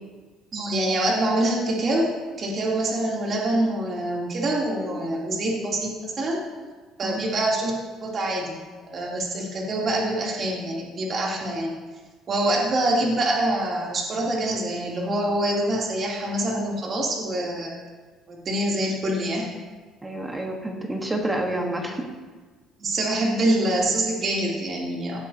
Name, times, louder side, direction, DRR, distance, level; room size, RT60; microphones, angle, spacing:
voice 1, 0.5-2.1 2.4-6.4 7.0-7.7 8.0-8.6 8.8-11.7 12.3-17.7 18.3-19.5 22.8-25.2, right 1 dB, 40° right, -3 dB, 3.2 m, -25 dB
voice 2, 20.0-22.1, right 1 dB, 15° right, 2 dB, 1.5 m, -28 dB
17.5 x 10.5 x 2.9 m, 1.4 s
cardioid pair, 120°, 0 cm